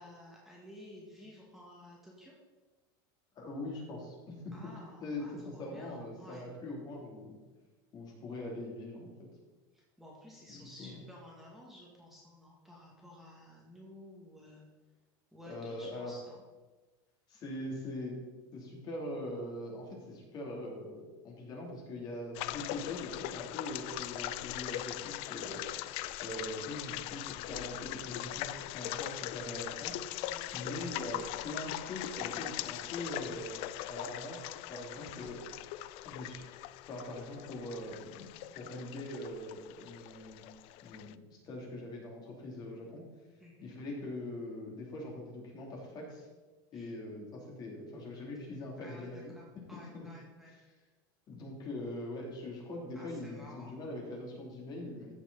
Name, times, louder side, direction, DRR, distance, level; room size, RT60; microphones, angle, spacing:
voice 1, 0.0-2.3 4.5-6.5 9.7-14.6 15.3-16.4 30.2-30.6 35.0-35.3 43.4-43.7 46.7-46.9 48.6-50.5 52.9-53.8, left 1 dB, ahead, -4 dB, 1.9 m, -53 dB
voice 2, 3.4-4.6 5.0-7.3 7.9-9.1 10.5-11.0 15.5-16.1 17.3-18.2 18.5-25.6 26.2-30.0 30.5-35.4 36.0-36.4 36.9-40.5 40.8-43.0 43.6-46.3 46.7-49.3 49.9-50.1 51.3-55.1, left 1 dB, 35° left, -1 dB, 2.9 m, -42 dB
sound 1, 22.3-41.1, left 15 dB, 50° left, 0.4 m, -41 dB
14.0 x 6.3 x 4.1 m, 1.2 s
supercardioid pair, 135°, 12 cm